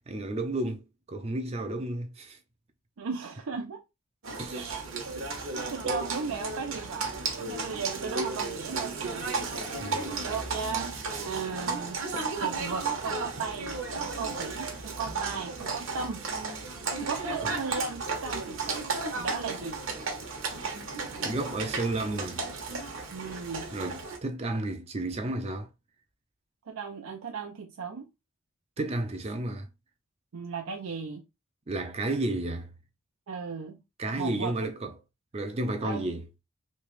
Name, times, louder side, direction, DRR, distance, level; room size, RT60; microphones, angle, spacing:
voice 1, 0.1-2.4 4.4-4.8 9.8-10.2 17.4-17.5 21.2-22.4 23.7-25.7 28.8-29.7 31.7-32.7 34.0-34.9 35.3-36.3, right 2 dB, 30° right, 0.5 m, -32 dB
voice 2, 3.0-3.8 4.5-7.1 7.5-9.3 10.2-10.9 11.2-12.0 12.4-16.2 17.0-18.9 19.1-19.8 23.1-23.7 26.7-28.1 30.3-31.2 33.3-33.8 34.2-34.5 35.8-36.2, right 5 dB, 85° right, 0.5 m, -36 dB
Livestock farm animals working animals, 4.2-24.2, right 4 dB, 65° right, 0.9 m, -34 dB
3.1 x 2.9 x 3.1 m
head